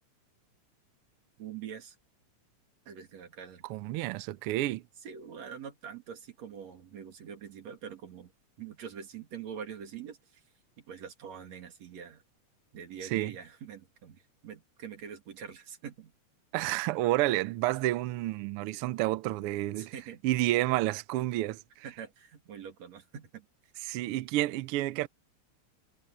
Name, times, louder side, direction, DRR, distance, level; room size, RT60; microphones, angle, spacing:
voice 1, 1.4-2.0 2.9-3.7 5.0-8.3 8.6-10.4 10.8-12.2 12.7-16.1 19.8-20.2 21.8-23.5, right 7 dB, 65° right, 3.5 m, -44 dB
voice 2, 3.7-4.8 13.1-13.3 16.5-19.9 20.2-21.6 23.9-25.1, right 16 dB, 90° right, 1.2 m, -29 dB
omnidirectional pair, 3.3 m